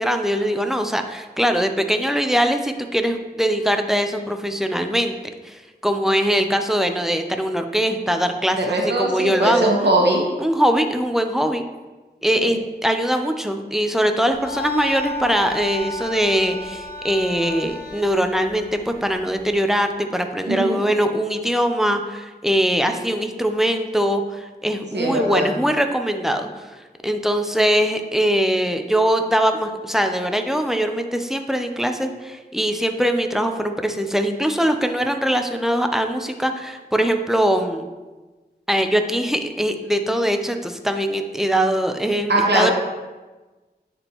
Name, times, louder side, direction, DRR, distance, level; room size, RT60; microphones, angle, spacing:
voice 1, 0.0-5.1 5.4-9.7 10.4-11.6 12.2-26.5 27.0-37.9 38.7-42.7, equal, ahead, 5 dB, 0.5 m, -22 dB
voice 2, 8.6-10.3 12.4-12.5 20.5-20.8 24.9-25.5 42.3-42.7, right 1 dB, 85° right, 0 dB, 1.1 m, -20 dB
sound 1, 14.3-19.5, left 2 dB, 60° left, 0.9 m, -33 dB
9.7 x 4.4 x 3.0 m, 1.2 s
wide cardioid pair, 70°, 17 cm